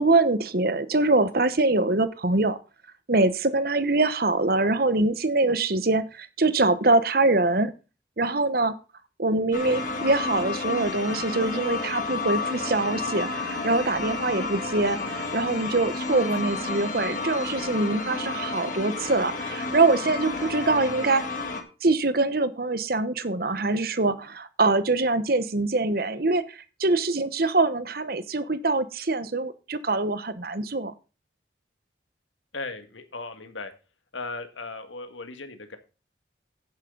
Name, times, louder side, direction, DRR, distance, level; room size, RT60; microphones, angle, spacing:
voice 1, 0.0-2.6 3.1-7.7 8.2-8.7 9.2-21.2 21.8-26.4 26.8-30.9, right 2 dB, 50° right, 13 dB, 1.0 m, -24 dB
sound 1, 9.5-21.6, left 3 dB, 45° left, 2.0 m, -31 dB
voice 2, 32.5-33.7 34.1-35.8, left 3 dB, 90° left, 8 dB, 1.9 m, -37 dB
10.5 x 9.8 x 3.9 m, 0.32 s
head